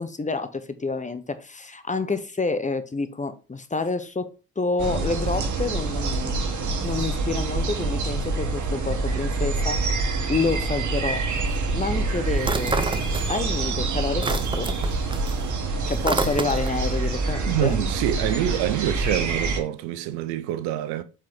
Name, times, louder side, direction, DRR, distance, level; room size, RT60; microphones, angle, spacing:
voice 1, 0.0-6.4 6.8-9.8 10.3-11.2 11.7-12.8 13.3-14.7 15.9-17.8, left 3 dB, 15° left, 1.1 m, -28 dB
sound 1, 4.8-19.6, right 3 dB, 45° right, 2.0 m, -26 dB
sound 2, 12.4-13.6 13.9-16.9, right 3 dB, 10° right, 0.8 m, -29 dB
voice 2, 17.5-21.0, right 13 dB, 65° right, 0.9 m, -26 dB
7.5 x 4.8 x 3.9 m
hypercardioid pair, 55°, 42 cm